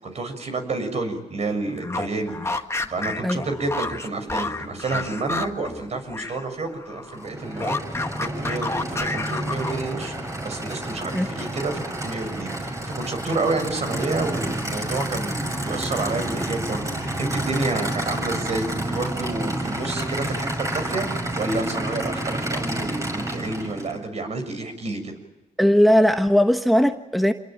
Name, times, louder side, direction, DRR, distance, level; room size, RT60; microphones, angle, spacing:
voice 1, 0.0-10.1 10.4-25.1, right 3 dB, 55° right, 6 dB, 6.8 m, -29 dB
sound 1, 1.7-6.4 6.7-10.0, left 2 dB, 20° left, 1.9 m, -30 dB
Aircraft / Idling, 7.1-24.0, right 1 dB, 20° right, 6.5 m, -29 dB
voice 2, 25.6-27.3, equal, ahead, 7 dB, 1.3 m, -18 dB
27.5 x 22.0 x 9.0 m, 1.0 s
cardioid pair, 90°, 13 cm